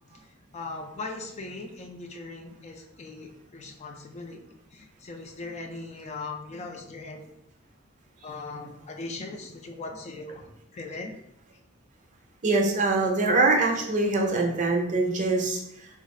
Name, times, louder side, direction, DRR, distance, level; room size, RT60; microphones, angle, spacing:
voice 1, 0.5-4.4 4.7-7.3 8.2-10.5 10.7-11.1, left 3 dB, 30° left, 4 dB, 0.3 m, -39 dB
voice 2, 12.4-15.9, right 3 dB, 35° right, 1 dB, 0.6 m, -24 dB
3.6 x 2.3 x 3.1 m, 0.76 s
head